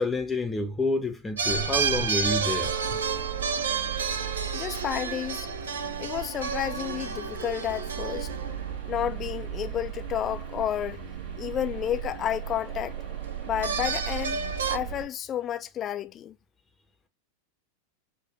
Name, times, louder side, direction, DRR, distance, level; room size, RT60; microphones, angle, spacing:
voice 1, 0.0-3.0, left 2 dB, 10° left, 0.9 m, -29 dB
sound 1, 1.4-15.1, right 9 dB, 50° right, 1.5 m, -37 dB
sound 2, 1.4-9.0 13.3-14.8, right 5 dB, 65° right, 0.7 m, -31 dB
voice 2, 4.5-5.5 6.0-8.3 8.9-11.0 11.4-13.0 13.4-14.4 14.7-16.3, left 10 dB, 30° left, 0.5 m, -31 dB
6.9 x 2.5 x 3.0 m
figure-of-eight pair, 90°, 0 cm